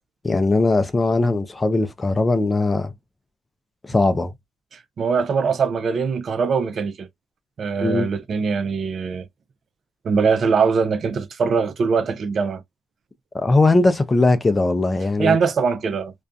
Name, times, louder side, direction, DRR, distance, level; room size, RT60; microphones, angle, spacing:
voice 1, 0.2-2.9 3.8-4.3 7.8-8.1 13.3-15.4, left 2 dB, 25° left, 0.4 m, -19 dB
voice 2, 4.7-7.1 7.6-9.3 10.0-12.6 15.2-16.1, right 5 dB, 55° right, 0.4 m, -22 dB
2.4 x 2.2 x 2.5 m
cardioid pair, 90°, 0 cm